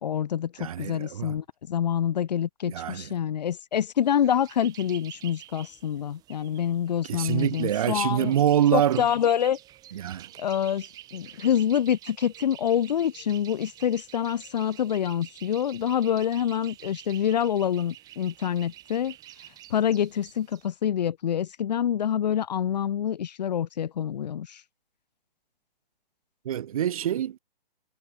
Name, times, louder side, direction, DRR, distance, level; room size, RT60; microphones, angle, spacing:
voice 1, 0.0-8.3 8.7-9.6 10.4-19.2 19.4-24.6, left 9 dB, 45° left, 2.3 m, -26 dB
voice 2, 0.6-1.3 2.6-3.1 7.0-9.1 9.9-10.3 26.4-27.4, right 10 dB, 35° right, 1.6 m, -25 dB
sound 1, 4.0-20.7, right 14 dB, 10° right, 2.3 m, -48 dB
hypercardioid pair, 160°, 30 cm